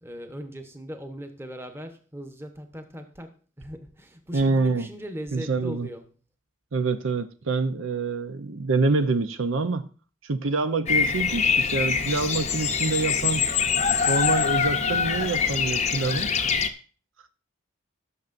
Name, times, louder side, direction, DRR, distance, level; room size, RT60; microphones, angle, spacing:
voice 1, 0.0-6.0, equal, 10° right, 1.0 m, -39 dB
voice 2, 4.3-4.9 5.3-5.9 6.7-9.9 10.2-13.4 14.1-16.5, right 3 dB, 75° right, 0.7 m, -26 dB
Bird vocalization bird call bird song, 10.9-16.7, left 6 dB, 35° left, 0.6 m, -24 dB
16.5 x 6.8 x 2.6 m
head